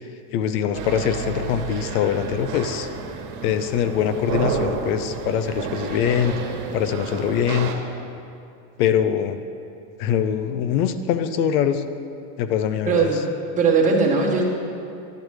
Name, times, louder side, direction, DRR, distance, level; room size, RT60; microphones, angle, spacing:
voice 1, 0.3-2.9 3.4-6.3 6.7-7.7 8.8-9.4 10.0-11.8 12.4-13.1, left 9 dB, 75° left, 11 dB, 0.7 m, -23 dB
sound 1, 0.7-7.7, right 5 dB, 80° right, 1.3 m, -30 dB
voice 2, 12.8-13.2 13.6-14.4, right 4 dB, 15° right, -3 dB, 1.2 m, -19 dB
10.5 x 10.0 x 3.2 m, 2.6 s
supercardioid pair, 150°, 46 cm